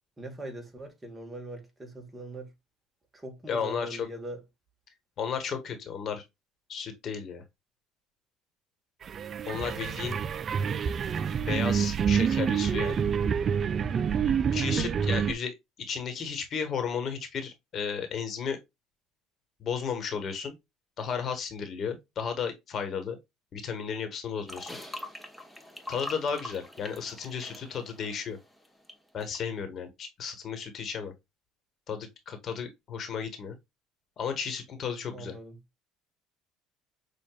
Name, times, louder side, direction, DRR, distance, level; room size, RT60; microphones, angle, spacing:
voice 1, 0.2-2.5 3.1-4.4 14.9-15.4 35.1-35.6, right 1 dB, 20° right, 1.3 m, -41 dB
voice 2, 3.5-4.1 5.2-6.2 6.7-7.4 9.5-10.2 11.4-13.0 14.5-15.5 15.9-18.6 19.6-20.5 21.0-23.2 23.5-24.8 25.9-28.4 29.1-31.1 31.9-33.5 34.2-35.3, left 6 dB, 50° left, 1.3 m, -34 dB
sound 1, 9.0-15.3, right 7 dB, 40° right, 0.3 m, -27 dB
sound 2, 24.5-28.9 29.2-29.4, left 1 dB, 5° left, 1.0 m, -43 dB
6.7 x 2.5 x 2.3 m
supercardioid pair, 100°, 0 cm